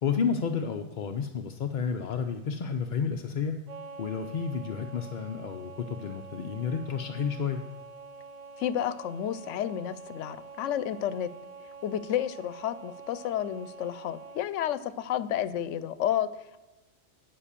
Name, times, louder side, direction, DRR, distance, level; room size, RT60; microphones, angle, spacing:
voice 1, 0.0-3.6 4.0-7.6, left 6 dB, 55° left, 4 dB, 0.6 m, -31 dB
sound 1, 3.7-14.4, right 4 dB, 45° right, 0.6 m, -46 dB
voice 2, 8.6-11.3 11.8-16.3, left 10 dB, 90° left, 16 dB, 0.9 m, -31 dB
9.9 x 5.5 x 6.7 m, 1.1 s
omnidirectional pair, 1.2 m